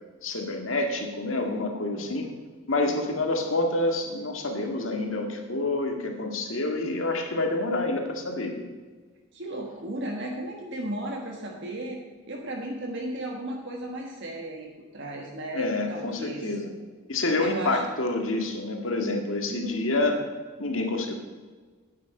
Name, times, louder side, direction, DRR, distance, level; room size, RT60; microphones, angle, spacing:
voice 1, 0.2-2.3 2.7-8.7 15.5-16.7 17.1-20.2 20.6-21.2, left 2 dB, 65° left, 3 dB, 1.9 m, -28 dB
voice 2, 1.9-2.4 2.9-3.1 9.3-12.0 12.3-16.5 17.4-17.8 19.5-19.8 20.1-20.2, right 1 dB, 55° right, 0 dB, 1.4 m, -35 dB
9.9 x 9.7 x 5.5 m, 1.5 s
head